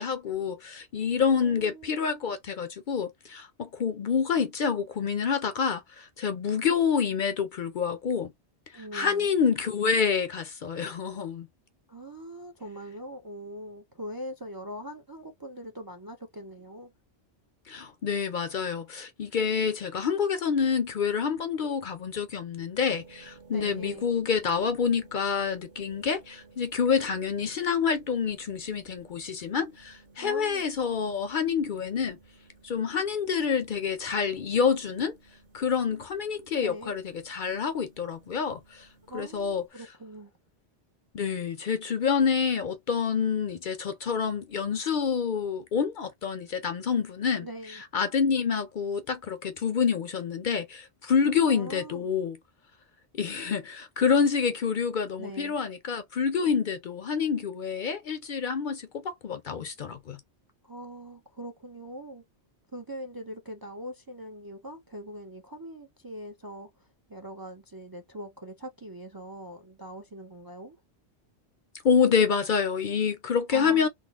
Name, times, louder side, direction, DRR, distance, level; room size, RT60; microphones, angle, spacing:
voice 1, 0.0-8.3 8.7-11.5 17.7-32.2 32.6-35.2 35.5-38.9 39.1-39.6 41.1-52.4 53.1-60.2 71.8-73.9, left 6 dB, 55° left, 0.6 m, -27 dB
voice 2, 1.3-2.0 8.7-9.3 11.9-16.9 23.5-24.1 30.2-30.6 36.6-36.9 39.1-40.3 47.4-47.8 51.5-52.1 55.2-55.6 60.6-62.2 62.7-66.7 67.1-70.8 73.5-73.9, right 1 dB, 30° right, 0.4 m, -42 dB
sound 1, 22.8-39.7, right 4 dB, 50° right, 1.6 m, -57 dB
3.7 x 2.0 x 3.5 m
omnidirectional pair, 1.1 m